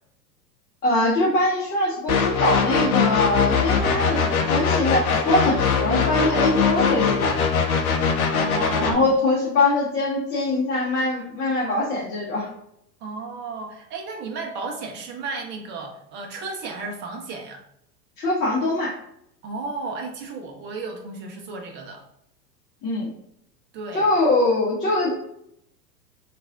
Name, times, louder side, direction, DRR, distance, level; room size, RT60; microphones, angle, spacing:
voice 1, 0.8-7.4 8.8-12.5 18.2-19.0 22.8-23.1 23.9-25.2, left 2 dB, 25° left, -7 dB, 0.9 m, -22 dB
sound 1, 2.1-8.9, left 6 dB, 60° left, 0.7 m, -21 dB
voice 2, 8.3-9.1 13.0-17.6 19.4-22.0 23.7-24.1, right 3 dB, 25° right, 2 dB, 0.6 m, -33 dB
3.3 x 2.4 x 3.4 m, 0.74 s
figure-of-eight pair, 95°, 49 cm